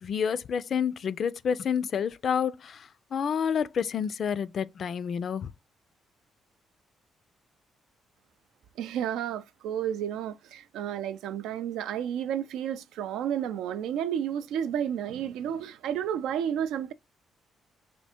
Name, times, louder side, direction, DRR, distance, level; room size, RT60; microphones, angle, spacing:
voice 1, 0.0-5.5, left 7 dB, 55° left, 0.3 m, -29 dB
voice 2, 8.8-16.9, right 9 dB, 90° right, 0.3 m, -31 dB
3.4 x 2.4 x 4.2 m
cardioid pair, 90°, 0 cm